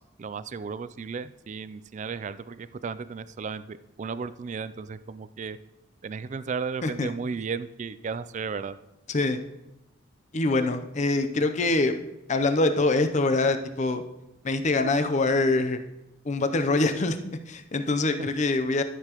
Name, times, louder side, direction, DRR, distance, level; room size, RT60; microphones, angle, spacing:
voice 1, 0.0-5.6 6.0-8.8 18.2-18.3, right 5 dB, 40° right, 14 dB, 0.3 m, -34 dB
voice 2, 9.1-9.4 10.3-12.0 12.3-14.0 14.4-15.8 16.2-18.8, left 2 dB, 35° left, 8 dB, 0.6 m, -24 dB
13.0 x 6.8 x 3.0 m, 0.92 s
head